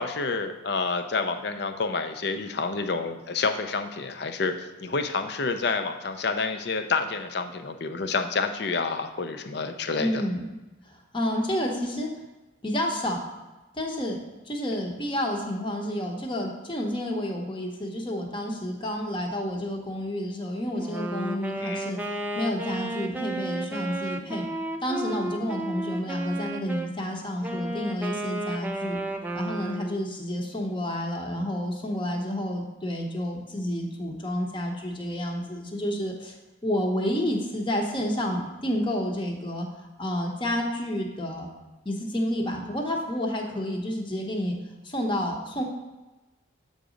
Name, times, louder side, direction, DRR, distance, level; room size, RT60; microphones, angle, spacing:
voice 1, 0.0-10.2 21.6-21.8, left 4 dB, 55° left, 8 dB, 0.5 m, -29 dB
voice 2, 10.0-10.5 10.8-12.1 12.6-13.2 13.7-14.2 14.5-24.5 24.8-29.0 29.3-36.4 36.6-41.5 41.8-44.6 44.8-45.6, equal, 25° left, 1 dB, 0.8 m, -30 dB
Wind instrument woodwind instrument, 20.8-26.9 27.4-30.1, right 1 dB, 10° right, 0.3 m, -33 dB
7.9 x 4.0 x 5.0 m, 1.1 s
head